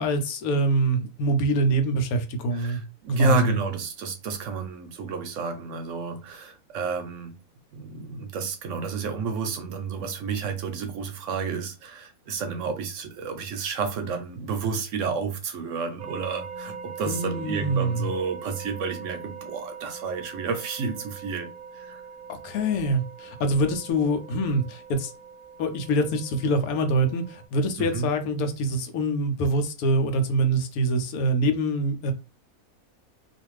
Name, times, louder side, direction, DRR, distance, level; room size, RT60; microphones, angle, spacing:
voice 1, 0.0-2.8 3.2-3.6 17.0-18.0 22.3-25.1 25.6-32.1, right 1 dB, 85° left, 1.1 m, -25 dB
voice 2, 2.5-7.4 7.7-21.5 21.7-22.0 27.8-28.1, right 4 dB, 70° right, 0.8 m, -30 dB
sound 1, 16.0-27.4, right 5 dB, 35° right, 0.6 m, -42 dB
2.5 x 2.4 x 3.1 m
omnidirectional pair, 1.5 m